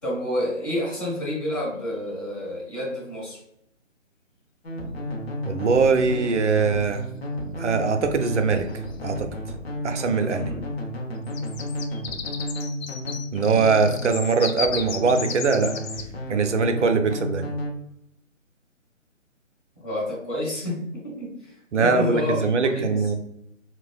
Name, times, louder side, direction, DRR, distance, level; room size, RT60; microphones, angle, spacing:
voice 1, 0.0-3.4 10.4-10.6 19.8-21.3 21.8-23.0, left 1 dB, 15° left, -10 dB, 1.4 m, -29 dB
sound 1, 4.6-14.2 14.7-17.7, equal, 50° left, 0.8 m, -32 dB
voice 2, 5.4-7.0 7.6-8.7 9.0-9.3 9.8-10.5 13.3-15.7 16.3-17.5 21.7-23.1, right 4 dB, 65° right, 7 dB, 0.5 m, -22 dB
sound 2, 6.0-6.5 8.2-8.3 8.6-8.9 11.2-16.1, left 6 dB, 85° left, 0.5 m, -35 dB
3.9 x 2.2 x 2.3 m, 0.77 s
figure-of-eight pair, 155°, 39 cm